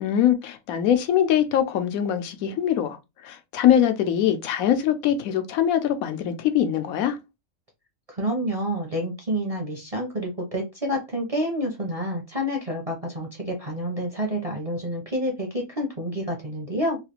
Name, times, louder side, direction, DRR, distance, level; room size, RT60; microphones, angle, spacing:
voice 1, 0.0-3.0 3.2-7.2, left 10 dB, 85° left, 1.0 m, -22 dB
voice 2, 8.1-17.0, equal, 40° right, 0.5 m, -28 dB
3.1 x 2.4 x 2.9 m
omnidirectional pair, 1.5 m